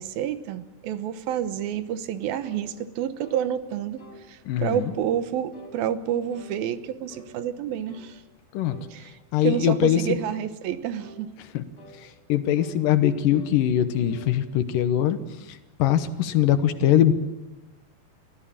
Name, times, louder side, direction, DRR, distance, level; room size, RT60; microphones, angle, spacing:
voice 1, 0.0-4.0 4.3-8.2 8.9-11.3, right 9 dB, 80° right, 12 dB, 2.9 m, -29 dB
sound 1, 2.4-2.7 3.2-3.4 4.0-4.2 4.8-5.0 5.5-5.8 6.3-6.6 7.1-7.3 7.9-8.1 8.6-8.9 9.4-9.7 10.2-10.4 11.0-11.2 11.7-12.0 12.5-12.8 13.3-13.6 13.9-14.4, right 1 dB, 35° left, 5.0 m, -48 dB
voice 2, 4.5-4.9 8.5-8.8 9.3-10.2 11.5-11.6 12.0-15.2 15.5-17.1, left 11 dB, 70° left, 11 dB, 2.6 m, -22 dB
24.5 x 16.0 x 8.7 m, 1.1 s
omnidirectional pair, 4.2 m